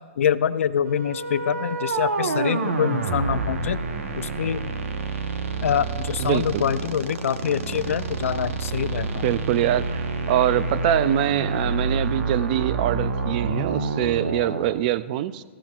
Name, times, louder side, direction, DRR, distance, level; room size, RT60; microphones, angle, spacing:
voice 1, 0.2-3.8 4.2-4.7 5.6-9.2, left 8 dB, 80° left, 15 dB, 0.5 m, -25 dB
sound 1, 0.8-14.7, right 3 dB, 90° right, 1.1 m, -28 dB
voice 2, 6.2-6.6 9.2-15.4, right 12 dB, 40° right, 15 dB, 0.4 m, -24 dB
18.0 x 15.0 x 2.4 m, 1.5 s
hypercardioid pair, 150°, 7 cm